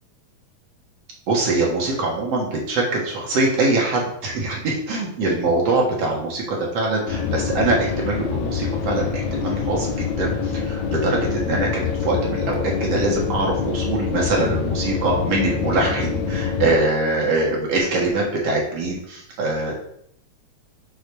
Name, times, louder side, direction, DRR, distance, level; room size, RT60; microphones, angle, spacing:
voice 1, 1.3-19.8, right 2 dB, 60° right, -2 dB, 2.6 m, -23 dB
sound 1, 7.1-16.8, left 6 dB, 80° left, 2.1 m, -25 dB
6.8 x 4.1 x 6.1 m, 0.69 s
omnidirectional pair, 3.3 m